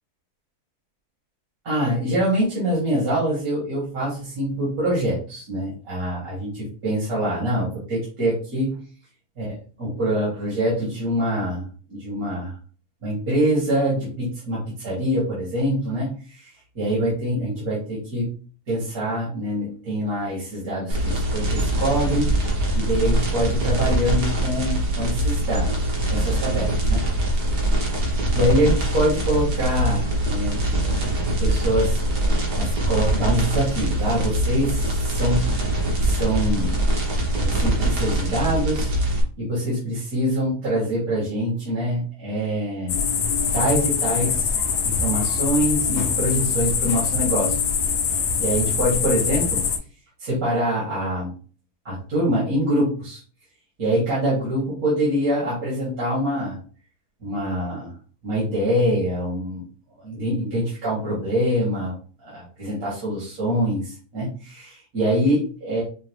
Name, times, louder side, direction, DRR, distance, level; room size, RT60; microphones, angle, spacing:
voice 1, 1.6-8.8 9.4-9.5 9.8-12.5 13.0-16.5 16.8-18.3 18.7-22.3 22.7-27.0 28.3-31.1 31.4-35.5 36.0-36.8 37.3-38.9 39.4-43.0 43.5-44.5 44.8-47.6 48.4-49.6 50.2-51.3 51.9-53.2 53.8-56.6 57.2-57.9 58.2-59.6 60.0-61.9 62.2-65.8, equal, 65° right, -7 dB, 2.2 m, -24 dB
sound 1, 20.9-39.2, right 1 dB, 85° right, 1.8 m, -23 dB
sound 2, 42.9-49.8, left 6 dB, 90° left, 1.3 m, -23 dB
5.6 x 2.1 x 3.2 m, 0.40 s
omnidirectional pair, 1.7 m